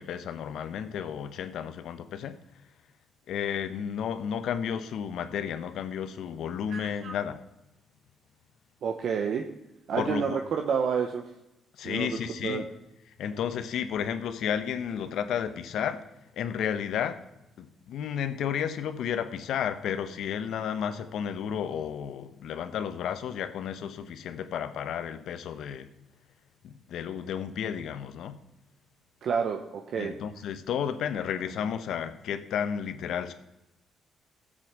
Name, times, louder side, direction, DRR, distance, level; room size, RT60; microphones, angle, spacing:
voice 1, 0.0-2.4 3.3-7.4 10.0-10.4 11.8-12.6 13.2-16.0 16.4-17.2 17.6-25.9 26.6-28.4 30.0-33.3, left 8 dB, 75° left, 11 dB, 0.9 m, -32 dB
voice 2, 6.7-7.2 8.8-9.4 9.9-11.2 11.8-12.6 29.2-30.1, right 6 dB, 65° right, 4 dB, 0.9 m, -29 dB
13.0 x 7.9 x 6.0 m, 0.93 s
cardioid pair, 90°, 0 cm